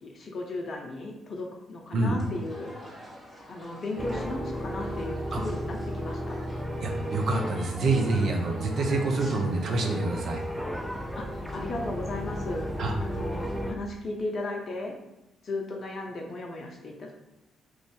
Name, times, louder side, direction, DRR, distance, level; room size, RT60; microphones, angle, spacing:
voice 1, 0.0-2.8 3.5-6.4 11.2-12.7 13.0-14.9 15.4-17.2, left 2 dB, 50° left, 0 dB, 0.5 m, -36 dB
sound 1, 2.2-13.6, equal, 20° right, 1.1 m, -47 dB
sound 2, 4.0-13.7, equal, ahead, 0.4 m, -35 dB
voice 2, 6.8-10.4 12.8-12.9, right 2 dB, 55° right, 2 dB, 0.6 m, -26 dB
3.1 x 2.5 x 3.6 m, 0.94 s
hypercardioid pair, 45°, 0 cm